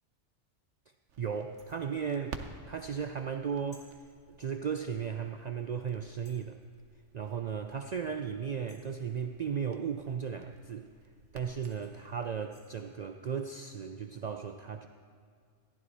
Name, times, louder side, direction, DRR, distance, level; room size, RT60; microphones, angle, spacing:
Crackle, 1.1-12.3, right 5 dB, 85° right, 1.1 m, -52 dB
voice 1, 1.2-3.9 4.4-6.6 7.1-10.9 11.3-14.9, right 7 dB, 65° right, 6 dB, 0.4 m, -36 dB
sound 1, 1.6-1.9 3.7-3.9 5.3-5.4 6.3-6.5 8.7-9.1 11.1-11.2 11.6-12.7, left 1 dB, 30° left, 2.2 m, -61 dB
14.5 x 11.0 x 4.1 m, 2.3 s
omnidirectional pair, 1.2 m